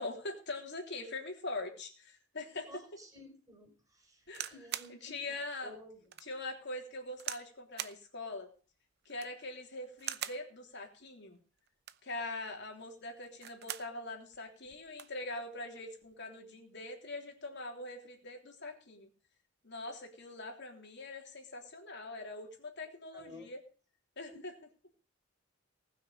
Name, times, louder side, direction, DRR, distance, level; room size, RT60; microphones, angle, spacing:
voice 1, 0.0-2.8 4.3-4.6 4.9-5.8 6.2-8.5 9.1-11.4 12.0-19.1 19.6-23.6 24.2-24.5, left 2 dB, 55° left, 2 dB, 3.3 m, -43 dB
voice 2, 2.7-5.2 5.6-6.0 23.1-23.5 24.3-24.4, left 1 dB, 15° right, 3 dB, 4.7 m, -53 dB
sound 1, 4.3-5.0 5.5-5.6 6.1-6.3 7.2-7.5 7.8-8.0 9.0-9.4 10.0-10.5 11.7-12.1 13.2-13.9 14.3-14.4 14.7-15.2 16.0-16.3, right 11 dB, 50° right, 0.7 m, -42 dB
19.5 x 6.5 x 6.6 m, 0.39 s
head